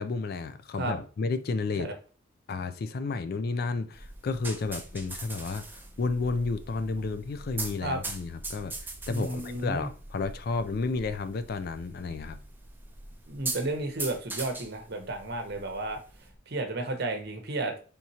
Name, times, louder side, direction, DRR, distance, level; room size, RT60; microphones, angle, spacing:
voice 1, 0.0-1.9 2.5-5.6 6.0-8.7 9.1-12.4, left 3 dB, 50° left, 0.4 m, -31 dB
sound 1, 3.9-16.3, right 3 dB, 10° right, 0.5 m, -41 dB
voice 2, 9.1-9.9 13.3-16.0 16.5-17.7, right 2 dB, 55° right, 0.9 m, -32 dB
4.3 x 3.6 x 2.7 m
head